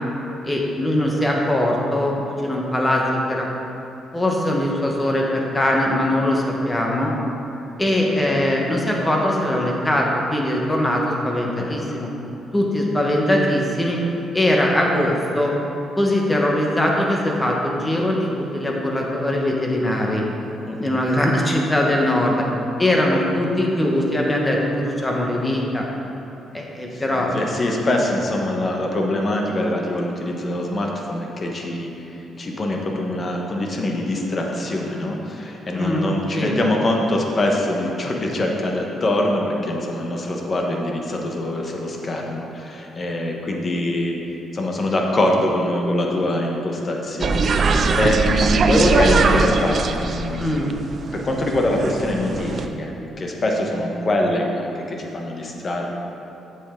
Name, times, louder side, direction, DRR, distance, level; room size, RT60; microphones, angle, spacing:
voice 1, 0.4-3.5 4.1-7.1 7.8-12.1 12.5-14.0 14.3-15.5 15.9-20.2 20.8-22.4 22.8-25.8 26.5-27.3 35.7-36.1 36.3-36.6 50.4-50.7, left 1 dB, 15° left, -1 dB, 1.3 m, -21 dB
voice 2, 20.7-21.0 26.9-44.2 44.5-50.6 51.1-55.9, left 1 dB, 40° left, 0 dB, 1.2 m, -24 dB
sound 1, 47.2-52.7, right 4 dB, 50° right, 0.5 m, -21 dB
8.3 x 7.1 x 3.8 m, 3.0 s
cardioid pair, 90°, 0 cm